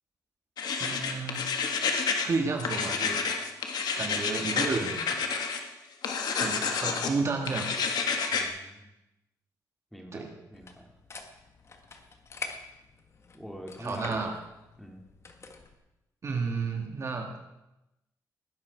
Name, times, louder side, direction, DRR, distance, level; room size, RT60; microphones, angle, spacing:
sound 1, 0.6-2.3 2.6-5.6 6.0-7.1 7.5-8.5, left 5 dB, 70° left, 1.7 m, -29 dB
voice 1, 0.8-1.4 2.2-3.2 4.0-5.1 6.3-7.7 10.1-10.3 13.8-14.3 16.2-17.4, right 4 dB, 40° right, 2 dB, 1.9 m, -31 dB
voice 2, 8.3-8.8 9.9-10.9 13.3-14.3 14.8-15.0, equal, ahead, 1 dB, 2.9 m, -44 dB
sound 2, 10.5-15.7, left 4 dB, 40° left, 1.6 m, -45 dB
19.0 x 10.5 x 4.6 m, 0.94 s
cardioid pair, 100°, 7 cm